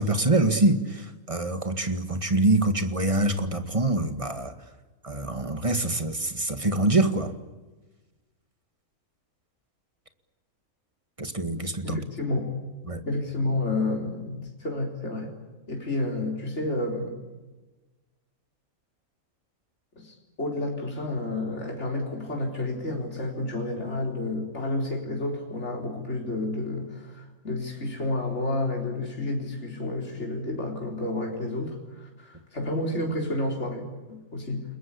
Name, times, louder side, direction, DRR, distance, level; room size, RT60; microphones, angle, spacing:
voice 1, 0.0-4.5 5.0-7.3 11.2-12.0 12.9-13.0, right 2 dB, 20° right, 8 dB, 1.9 m, -25 dB
voice 2, 11.8-12.5 13.1-15.4 15.7-17.2 20.0-34.6, left 2 dB, 50° left, 0 dB, 4.4 m, -30 dB
30.0 x 21.5 x 8.5 m, 1.2 s
omnidirectional pair, 1.5 m